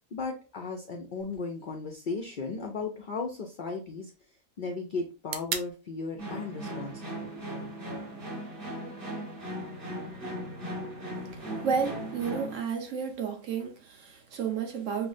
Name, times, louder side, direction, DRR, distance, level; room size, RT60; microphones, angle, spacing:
voice 1, 0.1-4.1 4.6-7.0 7.3-7.4, left 4 dB, 75° left, 0.4 m, -36 dB
sound 1, 1.2-9.2, right 7 dB, 90° right, 1.1 m, -45 dB
sound 2, 6.2-12.6, equal, 40° right, 1.2 m, -38 dB
voice 2, 11.3-15.1, right 6 dB, 65° right, 1.1 m, -32 dB
5.8 x 2.0 x 2.5 m
omnidirectional pair, 1.5 m